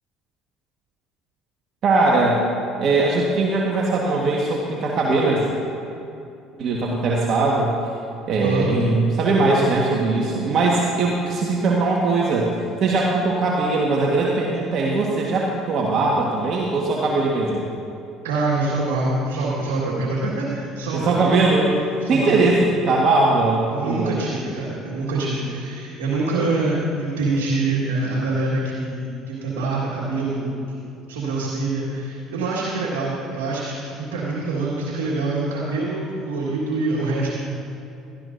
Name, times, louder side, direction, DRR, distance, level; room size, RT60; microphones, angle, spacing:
voice 1, 1.8-2.4 2.8-5.5 6.6-7.7 8.3-12.5 12.8-17.7 20.9-21.7 22.1-24.2, right 3 dB, 55° right, -3 dB, 1.4 m, -20 dB
voice 2, 8.4-8.7 18.2-21.4 22.0-22.5 23.7-30.6 31.1-37.4, right 2 dB, 80° right, -6 dB, 1.8 m, -25 dB
17.0 x 13.0 x 2.6 m, 2.6 s
hypercardioid pair, 65°, 0 cm